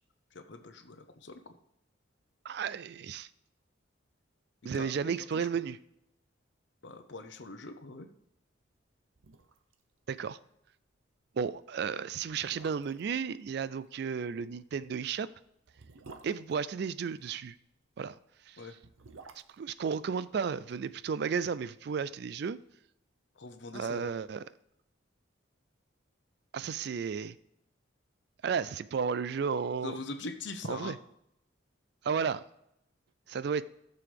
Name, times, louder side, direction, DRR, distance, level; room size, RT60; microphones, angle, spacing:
voice 1, 0.3-1.5 4.7-5.1 6.8-8.1 18.6-18.7 23.4-24.1 29.8-31.0, left 3 dB, 60° left, 0.8 m, -42 dB
voice 2, 2.5-3.3 4.6-5.8 10.1-10.4 11.4-15.3 16.2-17.5 18.0-18.2 18.5-18.6 19.6-22.6 23.7-24.4 26.5-27.4 28.4-30.0 30.7-31.0 32.0-32.4 33.3-33.6, right 6 dB, 55° right, 0.3 m, -33 dB
sound 1, 8.8-8.9 9.1-9.8 10.1-10.2 10.6-10.8 11.5-11.6 12.2-13.1 14.7-17.3 18.6-20.8 21.1-21.2, right 3 dB, 85° right, 0.8 m, -53 dB
14.5 x 6.9 x 3.4 m
head